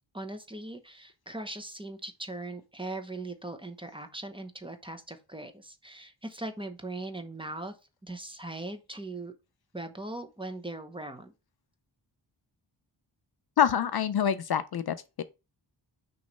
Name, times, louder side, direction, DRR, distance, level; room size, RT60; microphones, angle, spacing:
voice 1, 0.1-7.7 8.0-9.3 9.7-11.3, right 2 dB, 10° right, 0.8 m, -40 dB
voice 2, 13.6-15.2, left 8 dB, 55° left, 0.5 m, -26 dB
6.2 x 3.1 x 5.3 m
wide cardioid pair, 140°, 45 cm